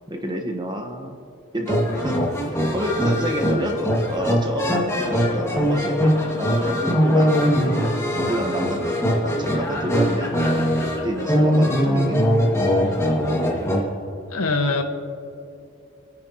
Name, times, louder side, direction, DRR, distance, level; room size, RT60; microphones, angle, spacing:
voice 1, 0.1-1.2 1.5-8.0 8.3-10.3 11.0-12.2, equal, 20° right, 3 dB, 1.2 m, -29 dB
sound 1, 1.7-13.8, equal, 15° left, 2.0 m, -21 dB
voice 2, 14.3-14.8, left 3 dB, 90° left, 4 dB, 1.5 m, -22 dB
28.5 x 10.0 x 3.0 m, 2.6 s
head